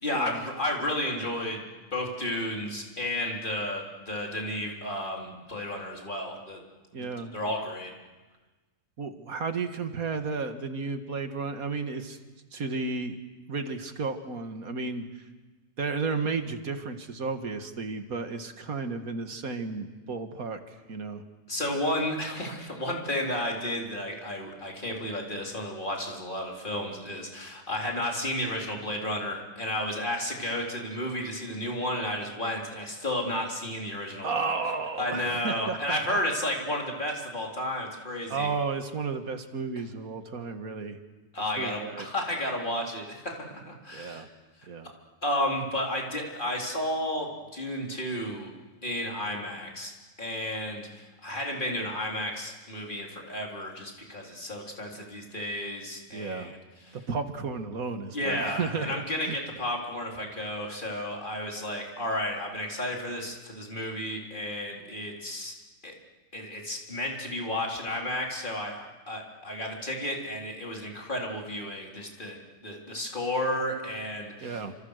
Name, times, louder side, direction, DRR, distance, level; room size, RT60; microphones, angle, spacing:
voice 1, 0.0-6.6 7.3-7.9 21.5-34.3 35.0-38.5 41.3-44.2 45.2-48.5 48.8-49.9 50.2-57.0 58.1-65.5 65.8-65.9 66.3-74.6, left 1 dB, 35° left, 0 dB, 4.1 m, -32 dB
voice 2, 6.9-7.3 9.0-12.2 12.5-13.2 13.5-15.0 15.8-21.2 34.2-36.2 38.3-41.0 41.6-42.1 43.9-44.3 44.7-44.9 56.1-56.5 57.1-59.4 74.4-74.8, right 4 dB, 80° right, 7 dB, 2.2 m, -33 dB
29.0 x 26.5 x 6.6 m, 1.2 s
omnidirectional pair, 1.5 m